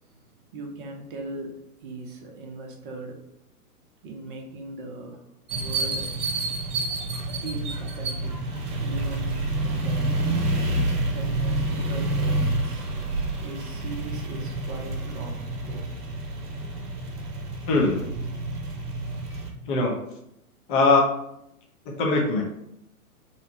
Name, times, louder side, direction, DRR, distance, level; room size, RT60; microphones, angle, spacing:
voice 1, 0.5-3.2 4.0-5.2 5.5-6.1 7.4-8.4 8.8-10.2 11.1-13.0 13.4-15.9, right 2 dB, 35° right, 2 dB, 0.5 m, -39 dB
sound 1, 5.5-19.5, right 2 dB, 85° right, 0.7 m, -28 dB
voice 2, 17.7-18.1 19.7-19.9 20.7-21.1 22.0-22.4, left 3 dB, 35° left, 0 dB, 0.6 m, -21 dB
2.8 x 2.0 x 2.7 m, 0.79 s
hypercardioid pair, 120°, 45 cm